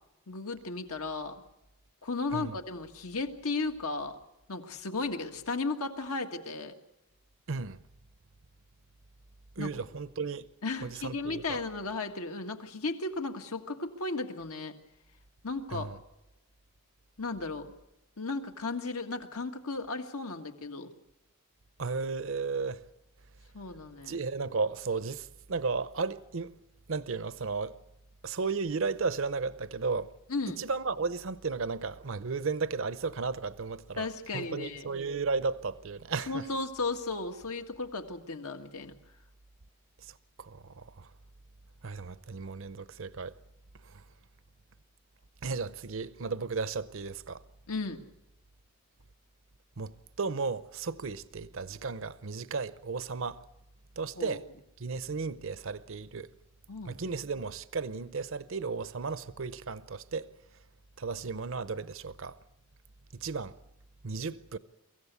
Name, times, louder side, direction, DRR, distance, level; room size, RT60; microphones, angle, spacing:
voice 1, 0.3-1.4 2.0-4.2 4.5-6.7 9.6-9.8 10.6-14.8 15.4-15.9 17.2-17.7 18.2-20.9 23.5-24.2 30.3-30.6 34.0-34.9 36.3-38.9 47.7-48.0 54.2-54.4 56.7-57.0, left 3 dB, 80° left, 1.8 m, -35 dB
voice 2, 7.5-7.8 9.6-10.5 10.8-11.6 15.7-16.0 21.8-22.8 24.0-26.5 26.9-27.7 28.2-30.1 30.5-34.1 34.3-36.4 40.0-41.1 41.8-43.3 43.8-44.0 45.4-47.4 49.8-53.4 54.0-54.4 54.8-56.3 56.8-60.3 61.0-62.4 63.1-63.5 64.0-64.6, right 4 dB, 60° right, 0.7 m, -34 dB
24.0 x 15.5 x 8.2 m
head